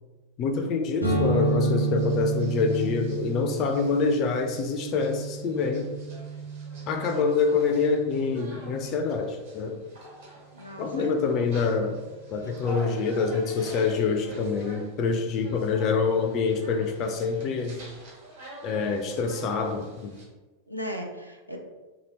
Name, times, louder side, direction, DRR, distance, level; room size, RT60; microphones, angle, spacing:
voice 1, 0.4-5.9 6.9-9.8 10.8-12.0 12.3-17.8 18.6-20.1, left 4 dB, 35° left, 5 dB, 0.3 m, -26 dB
sound 1, 1.0-8.6, right 3 dB, 85° left, 0.8 m, -31 dB
sound 2, 1.1-20.2, right 1 dB, 60° right, 1.1 m, -47 dB
voice 2, 10.5-11.2 12.4-12.5 20.7-21.6, equal, 85° right, 2 dB, 0.4 m, -37 dB
2.8 x 2.8 x 3.0 m, 1.2 s
figure-of-eight pair, 90°, 0 cm